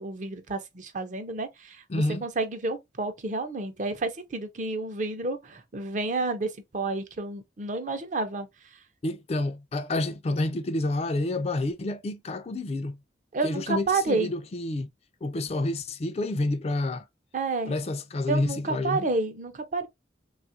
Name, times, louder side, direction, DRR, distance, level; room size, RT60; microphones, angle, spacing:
voice 1, 0.0-8.5 13.3-14.3 17.3-17.7 18.3-19.9, right 3 dB, 45° right, 0.6 m, -30 dB
voice 2, 1.9-2.2 9.0-13.0 13.4-14.9 15.2-17.0 17.7-19.1, left 2 dB, 35° left, 0.4 m, -29 dB
3.4 x 2.4 x 2.7 m
head